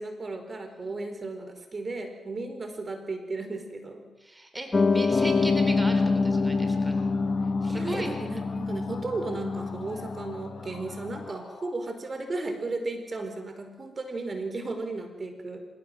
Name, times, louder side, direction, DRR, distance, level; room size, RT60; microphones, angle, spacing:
voice 1, 0.0-4.1 7.7-15.7, right 2 dB, 45° right, 7 dB, 4.5 m, -35 dB
voice 2, 4.2-7.1 7.6-8.2, right 1 dB, 15° right, 5 dB, 4.1 m, -38 dB
Piano, 4.7-11.3, left 4 dB, 40° left, 1.2 m, -26 dB
sound 1, 5.6-11.8, left 4 dB, 55° left, 4.1 m, -45 dB
26.5 x 16.5 x 7.7 m, 1.1 s
supercardioid pair, 50°, 0 cm